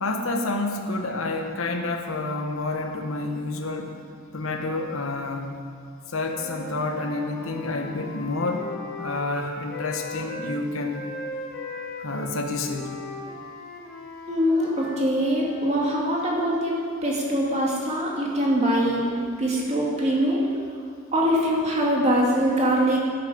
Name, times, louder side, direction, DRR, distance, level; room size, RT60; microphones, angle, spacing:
voice 1, 0.0-3.9 4.3-5.5 6.1-8.7 9.0-11.1 12.0-12.9, left 2 dB, 75° left, 3 dB, 1.1 m, -29 dB
Wind instrument woodwind instrument, 6.2-10.6 10.9-15.7, left 1 dB, 50° left, 1.3 m, -38 dB
voice 2, 14.3-19.1 19.4-20.4 21.1-23.0, equal, 30° right, -3 dB, 2.3 m, -23 dB
12.0 x 11.0 x 5.0 m, 2.2 s
head